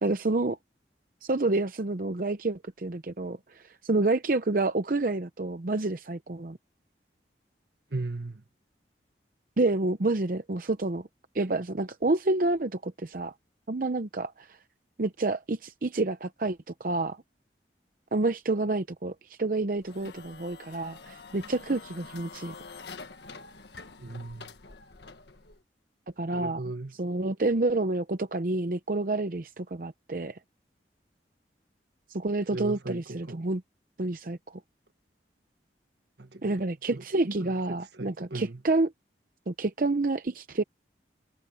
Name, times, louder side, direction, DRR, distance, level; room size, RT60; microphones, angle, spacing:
voice 1, 0.0-0.6 1.2-6.6 9.6-11.1 11.3-13.3 13.7-14.6 15.0-17.2 18.1-22.5 26.2-26.6 27.0-30.4 32.1-33.6 34.0-34.6 36.4-38.9 39.5-40.6, right 2 dB, 50° right, 0.7 m, -28 dB
voice 2, 7.9-8.4 24.0-24.5 26.3-26.9 32.5-33.5 36.2-36.6 36.9-38.6, right 2 dB, 75° right, 1.5 m, -37 dB
sound 1, 19.8-25.6, left 4 dB, 75° left, 1.6 m, -46 dB
head